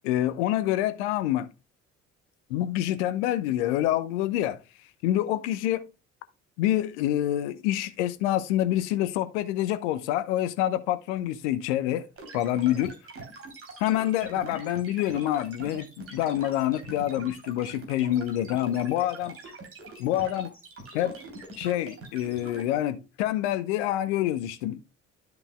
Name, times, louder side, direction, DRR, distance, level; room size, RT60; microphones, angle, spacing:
voice 1, 0.0-1.5 2.5-4.6 5.0-5.8 6.6-12.0 12.3-12.9 13.8-19.4 20.0-20.5 20.9-21.1 21.6-24.8, left 13 dB, 70° left, 0.8 m, -27 dB
sound 1, 12.2-22.6, right 3 dB, 40° right, 3.3 m, -43 dB
12.5 x 5.3 x 2.3 m
figure-of-eight pair, 50°, 36 cm